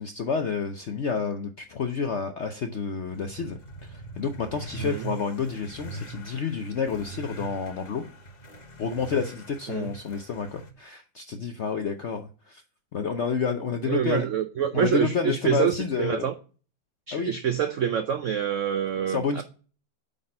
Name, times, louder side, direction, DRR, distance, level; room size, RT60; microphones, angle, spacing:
voice 1, 0.0-8.0 8.8-12.6 12.9-14.3 14.7-16.3 17.1-17.3 19.1-19.4, left 5 dB, 70° left, 0.6 m, -29 dB
sound 1, 3.0-10.7, right 2 dB, 30° left, 0.8 m, -42 dB
voice 2, 4.8-5.1 9.7-9.9 13.9-16.3 17.1-19.4, right 8 dB, 85° right, 0.6 m, -26 dB
8.6 x 4.1 x 4.2 m
omnidirectional pair, 2.0 m